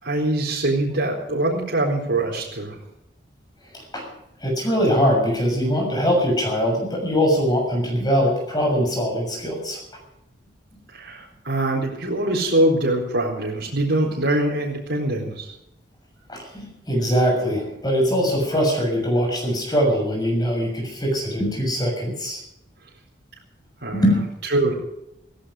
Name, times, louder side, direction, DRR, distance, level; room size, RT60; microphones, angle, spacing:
voice 1, 0.0-2.8 10.9-15.5 23.8-24.1 24.5-24.7, right 1 dB, 75° right, -4 dB, 4.3 m, -23 dB
voice 2, 3.7-4.1 4.4-9.8 16.3-22.4 23.9-24.2, equal, 20° left, 1 dB, 6.7 m, -22 dB
17.0 x 16.5 x 5.1 m, 0.83 s
head